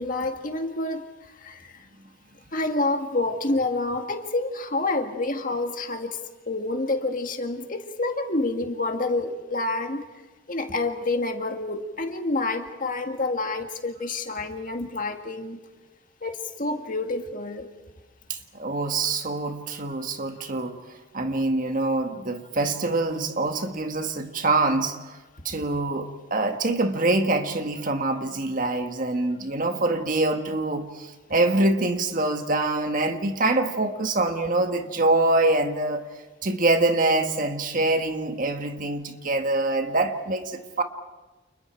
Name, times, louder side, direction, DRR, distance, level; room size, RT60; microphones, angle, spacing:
voice 1, 0.0-1.9 2.5-6.2 6.5-10.1 10.5-15.6 16.2-17.7, left 2 dB, 45° left, 1.9 m, -28 dB
voice 2, 18.3-25.2 25.4-36.1 36.4-40.8, right 2 dB, 45° right, 1.7 m, -25 dB
30.0 x 29.5 x 4.6 m
head